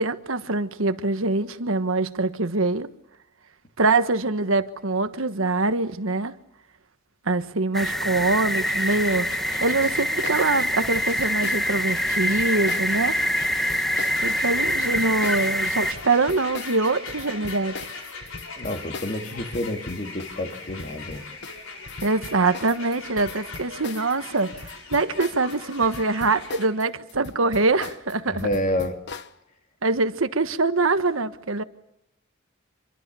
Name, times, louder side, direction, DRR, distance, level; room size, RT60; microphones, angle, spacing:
voice 1, 0.0-2.9 3.8-6.3 7.2-9.3 9.6-13.2 14.2-17.7 22.0-24.5 24.9-28.5 29.8-31.6, right 3 dB, 75° right, 1.4 m, -24 dB
sound 1, 7.7-15.9, equal, ahead, 1.0 m, -25 dB
sound 2, 8.5-26.7, left 3 dB, 80° left, 6.8 m, -39 dB
sound 3, 10.2-25.6 25.8-29.3, left 4 dB, 55° left, 1.1 m, -40 dB
voice 2, 18.6-21.3 28.2-29.0, left 1 dB, 40° left, 2.7 m, -29 dB
26.0 x 23.5 x 7.0 m
head